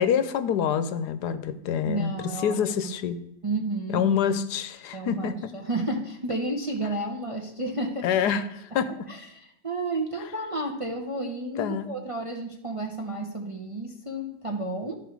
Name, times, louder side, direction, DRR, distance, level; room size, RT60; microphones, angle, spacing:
voice 1, 0.0-3.2 3.9-5.4 8.0-9.1 11.6-11.9, left 8 dB, 80° left, 12 dB, 1.2 m, -26 dB
voice 2, 1.9-2.9 3.4-4.1 4.9-8.1 9.1-14.9, right 2 dB, 30° right, 1 dB, 0.6 m, -31 dB
12.0 x 5.1 x 4.6 m, 0.83 s
omnidirectional pair, 1.7 m